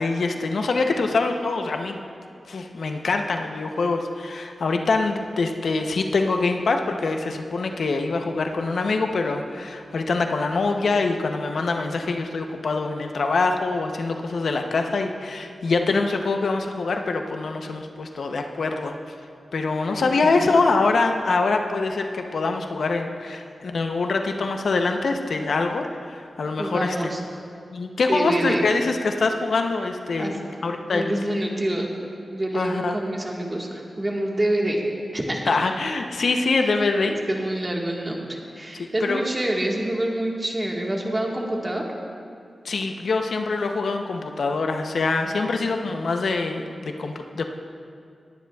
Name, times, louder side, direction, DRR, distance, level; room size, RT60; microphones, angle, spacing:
voice 1, 0.0-2.0 2.5-18.9 19.5-27.0 27.7-30.4 30.6-31.2 32.5-33.0 35.5-37.1 38.8-39.2 42.6-47.4, left 3 dB, 80° left, 4 dB, 0.7 m, -24 dB
voice 2, 20.0-20.4 26.6-27.2 28.1-28.6 30.2-30.4 30.9-31.9 32.3-34.8 35.1-35.6 37.0-41.8 45.2-45.7, right 1 dB, 25° right, -1 dB, 1.5 m, -27 dB
19.5 x 10.0 x 2.3 m, 2.4 s
wide cardioid pair, 90°, 0 cm